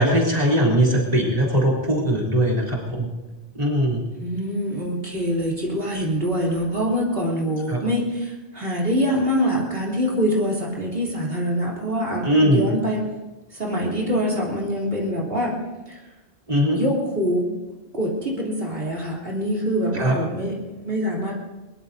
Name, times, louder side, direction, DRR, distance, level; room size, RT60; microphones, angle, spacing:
voice 1, 0.0-3.1 3.5-4.0 7.7-7.8 12.2-12.6 16.5-16.8 19.9-20.1, right 1 dB, 35° right, -4 dB, 3.7 m, -20 dB
voice 2, 4.2-13.0 13.5-15.6 15.9-16.0 16.7-17.5 17.9-21.4, equal, 60° right, -5 dB, 3.6 m, -24 dB
23.0 x 21.5 x 2.8 m, 1.1 s
omnidirectional pair, 1.1 m